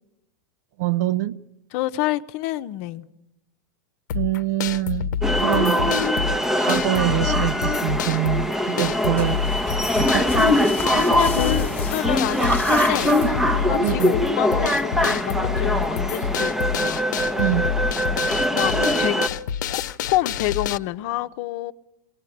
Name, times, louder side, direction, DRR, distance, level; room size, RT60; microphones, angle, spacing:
voice 1, 0.8-1.4 4.1-6.0 6.4-9.4 9.9-10.3 13.8-14.2 17.4-17.7, right 16 dB, 65° right, 0.9 m, -25 dB
voice 2, 1.7-3.1 11.0-13.2 13.5-17.0 18.5-21.7, left 15 dB, 50° left, 0.9 m, -28 dB
sound 1, 4.1-20.8, left 7 dB, 80° left, 0.9 m, -28 dB
sound 2, 5.2-19.3, left 1 dB, 5° right, 0.8 m, -22 dB
sound 3, 9.2-13.7, left 7 dB, 20° left, 1.3 m, -34 dB
22.0 x 18.5 x 10.0 m
supercardioid pair, 155°, 10 cm